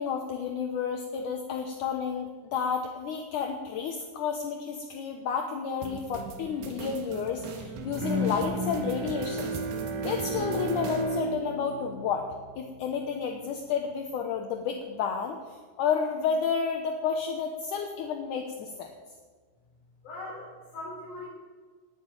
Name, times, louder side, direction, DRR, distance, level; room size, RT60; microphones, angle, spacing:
voice 1, 0.0-9.5 10.0-12.3 12.6-15.4 15.8-18.9, left 6 dB, 75° left, 3 dB, 2.0 m, -31 dB
sound 1, 5.8-11.1, right 2 dB, 75° right, 3.3 m, -39 dB
Bowed string instrument, 8.0-13.1, right 2 dB, 60° right, 2.7 m, -33 dB
voice 2, 20.0-21.3, left 2 dB, 50° left, -7 dB, 6.0 m, -40 dB
18.0 x 6.8 x 9.1 m, 1.5 s
omnidirectional pair, 4.6 m